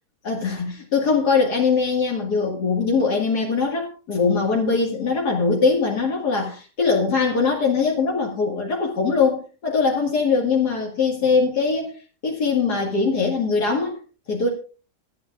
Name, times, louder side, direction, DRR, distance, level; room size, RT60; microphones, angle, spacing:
voice 1, 0.2-11.9 12.2-14.0 14.3-14.5, left 4 dB, 70° left, -1 dB, 2.4 m, -21 dB
25.0 x 8.7 x 2.4 m, 0.36 s
omnidirectional pair, 1.8 m